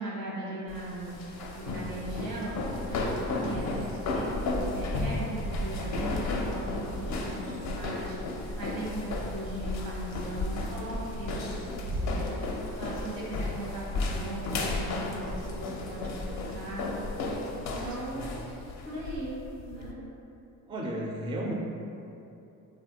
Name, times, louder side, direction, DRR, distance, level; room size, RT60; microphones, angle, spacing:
voice 1, 0.0-16.9 17.6-20.0, right 1 dB, 90° right, -6 dB, 1.0 m, -39 dB
sound 1, 0.7-19.9, left 2 dB, 50° left, 0.4 m, -34 dB
sound 2, 0.8-13.9, equal, 65° right, 0.6 m, -41 dB
voice 2, 3.2-3.6 18.1-18.3 20.7-21.5, right 1 dB, 15° right, -1 dB, 0.3 m, -35 dB
3.1 x 2.5 x 2.7 m, 2.8 s
cardioid pair, 80°, 37 cm